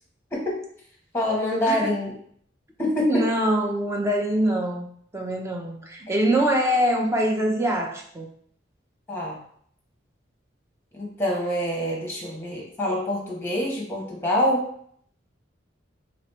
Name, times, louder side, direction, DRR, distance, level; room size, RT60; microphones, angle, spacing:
voice 1, 1.1-2.1 2.8-3.2 9.1-9.4 10.9-14.6, left 1 dB, 10° left, -2 dB, 1.2 m, -25 dB
voice 2, 3.0-4.9 5.1-8.3, right 1 dB, 15° right, 0 dB, 0.6 m, -24 dB
3.2 x 3.0 x 4.3 m, 0.62 s
head